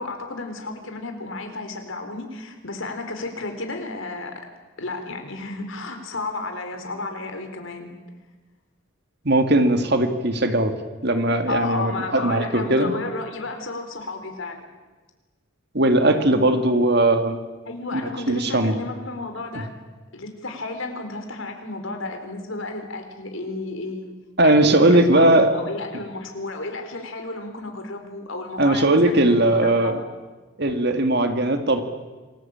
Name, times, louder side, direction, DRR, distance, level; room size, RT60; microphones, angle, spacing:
voice 1, 0.0-4.4 4.8-7.9 11.5-14.6 17.7-19.7 20.1-24.1 24.4-30.0, left 2 dB, 70° left, 5 dB, 4.3 m, -32 dB
voice 2, 9.2-10.7 11.0-12.9 15.7-17.4 17.9-18.8 19.5-19.6 24.4-25.5 28.6-30.0 30.6-31.8, right 1 dB, 50° right, 7 dB, 2.3 m, -19 dB
27.5 x 20.5 x 8.9 m, 1.3 s
head